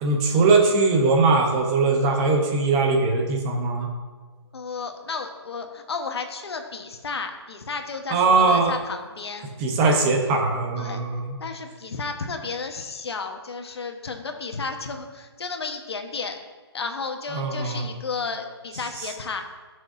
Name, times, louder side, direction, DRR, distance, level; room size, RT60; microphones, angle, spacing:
voice 1, 0.0-3.9 8.1-8.7 9.6-11.4 17.3-17.8, right 3 dB, 15° right, 1 dB, 0.9 m, -20 dB
voice 2, 4.5-9.5 10.8-11.0 11.4-16.4 16.7-19.4, left 4 dB, 70° left, 5 dB, 1.3 m, -33 dB
18.5 x 6.4 x 2.7 m, 1.4 s
hypercardioid pair, 160°, 14 cm